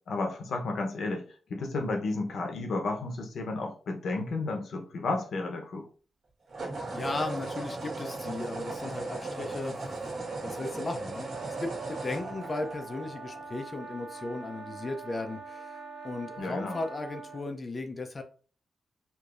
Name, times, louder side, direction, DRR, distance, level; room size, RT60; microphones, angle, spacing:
voice 1, 0.1-1.2 1.5-5.9 16.4-16.8, left 3 dB, 65° left, 3 dB, 0.9 m, -32 dB
sound 1, 2.3-2.6 6.5-13.5, right 3 dB, 55° right, 1.5 m, -37 dB
voice 2, 6.9-9.9 10.4-15.8 16.0-18.2, left 2 dB, 30° left, 5 dB, 0.5 m, -36 dB
sound 2, 11.2-17.5, right 4 dB, 75° right, 0.8 m, -44 dB
4.7 x 2.7 x 2.5 m, 0.39 s
wide cardioid pair, 120°, 0 cm